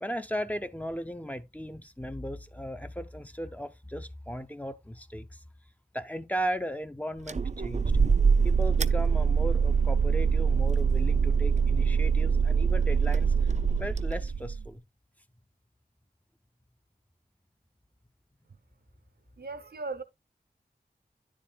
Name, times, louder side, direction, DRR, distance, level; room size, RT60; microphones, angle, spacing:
voice 1, 0.0-5.3 5.9-7.9 8.4-13.3 13.8-14.8, equal, 10° left, 0.7 m, -36 dB
sound 1, 7.3-14.7, right 5 dB, 45° right, 0.5 m, -24 dB
voice 2, 19.4-20.0, right 3 dB, 70° right, 0.8 m, -37 dB
9.8 x 7.3 x 2.3 m
wide cardioid pair, 70°, 17 cm